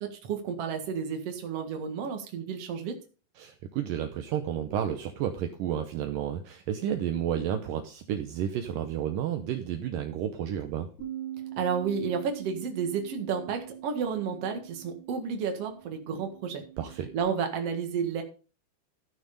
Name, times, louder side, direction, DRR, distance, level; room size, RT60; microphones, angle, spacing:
voice 1, 0.0-3.0 11.6-16.6 17.1-18.2, right 6 dB, 50° right, 4 dB, 2.1 m, -31 dB
voice 2, 3.4-10.9 16.8-17.1, right 10 dB, 80° right, 7 dB, 2.0 m, -31 dB
Bass guitar, 11.0-17.2, right 11 dB, 60° left, 9.1 m, -43 dB
13.5 x 6.4 x 5.2 m, 0.36 s
omnidirectional pair, 4.9 m